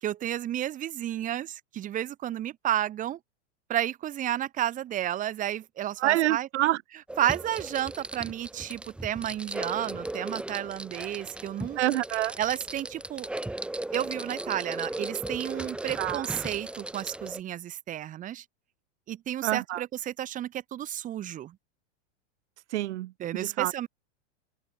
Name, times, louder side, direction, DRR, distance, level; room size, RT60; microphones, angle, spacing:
voice 1, 0.0-3.2 3.7-6.5 7.2-11.8 12.4-13.3 13.9-18.4 19.1-21.6 23.2-23.9, right 12 dB, 20° right, 4.5 m, -32 dB
voice 2, 6.0-6.8 11.8-12.4 16.0-16.3 19.4-19.8 22.7-23.7, right 15 dB, 65° right, 2.3 m, -27 dB
sound 1, 7.1-17.4, right 1 dB, 5° right, 3.3 m, -37 dB
supercardioid pair, 175°, 37 cm